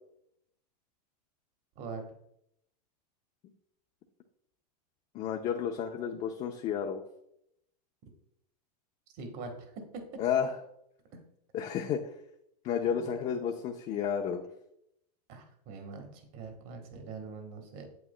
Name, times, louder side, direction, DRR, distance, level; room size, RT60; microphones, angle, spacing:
voice 1, 1.7-2.1 9.1-10.0 12.8-13.1 15.3-17.9, right 4 dB, 45° right, 5 dB, 1.6 m, -43 dB
voice 2, 5.1-7.0 10.2-10.5 11.5-12.0 12.6-14.5, left 8 dB, 35° left, 3 dB, 0.7 m, -31 dB
8.7 x 7.8 x 2.2 m, 0.77 s
supercardioid pair, 130°, 21 cm